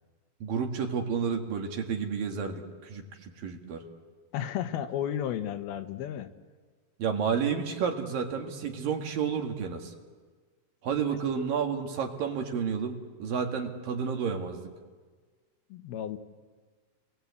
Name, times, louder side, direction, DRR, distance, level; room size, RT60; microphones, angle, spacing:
voice 1, 0.4-3.8 7.0-9.9 10.8-14.7, right 6 dB, 65° right, 3 dB, 3.4 m, -31 dB
voice 2, 4.3-6.3 15.7-16.2, left 10 dB, 80° left, 8 dB, 2.9 m, -33 dB
29.5 x 21.5 x 8.4 m, 1.5 s
omnidirectional pair, 4.5 m